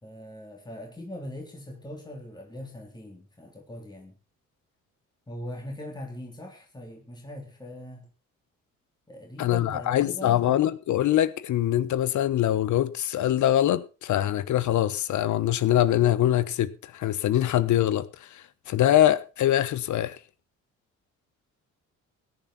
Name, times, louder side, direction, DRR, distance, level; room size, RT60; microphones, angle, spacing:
voice 1, 0.0-4.1 5.3-8.1 9.1-10.5, left 1 dB, 15° left, 3.5 m, -41 dB
voice 2, 9.4-18.1 18.3-20.2, left 12 dB, 75° left, 1.2 m, -23 dB
17.0 x 11.0 x 4.2 m
cardioid pair, 90°, 30 cm